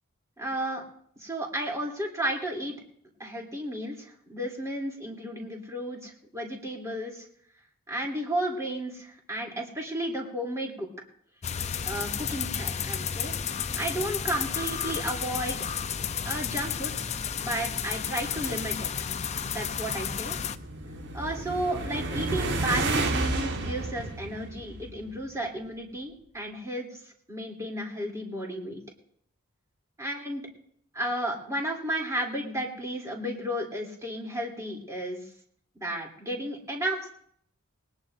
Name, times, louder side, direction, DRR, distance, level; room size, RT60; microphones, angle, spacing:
voice 1, 0.4-0.8 1.2-2.7 3.2-7.3 7.9-10.9 11.8-13.3 13.8-15.6 16.2-16.9 17.4-18.9 19.4-20.4 21.1-28.8 30.0-30.4 30.9-35.3 35.7-37.1, right 1 dB, 15° right, -1 dB, 2.9 m, -33 dB
sound 1, 11.4-20.6, left 7 dB, 30° left, 0.5 m, -32 dB
sound 2, 19.9-25.2, right 2 dB, 55° right, 1.4 m, -31 dB
20.5 x 20.0 x 2.6 m, 0.66 s
head